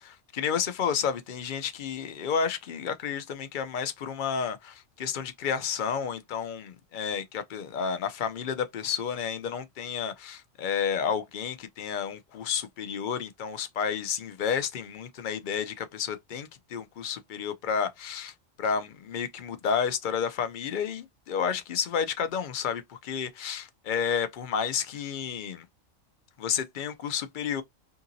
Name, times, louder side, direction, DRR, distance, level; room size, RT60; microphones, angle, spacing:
voice 1, 0.0-18.3 18.6-25.6 26.4-27.6, left 7 dB, 65° left, 0.5 m, -31 dB
2.8 x 2.7 x 2.6 m
omnidirectional pair, 1.3 m